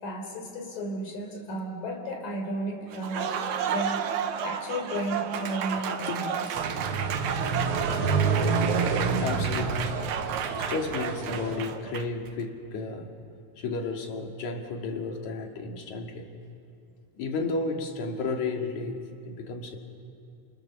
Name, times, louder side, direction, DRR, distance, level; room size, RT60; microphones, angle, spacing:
voice 1, 0.0-3.4 3.7-4.0 4.4-6.7, equal, 75° left, 3 dB, 5.2 m, -33 dB
Applause, 2.9-12.3, right 8 dB, 70° right, 2.3 m, -32 dB
sound 1, 6.5-11.5, right 4 dB, 50° right, 2.0 m, -28 dB
voice 2, 9.2-10.0 10.5-13.3 13.6-16.3 17.2-19.8, left 3 dB, 60° left, 3 dB, 3.4 m, -33 dB
29.0 x 29.0 x 7.0 m, 2.8 s
omnidirectional pair, 3.8 m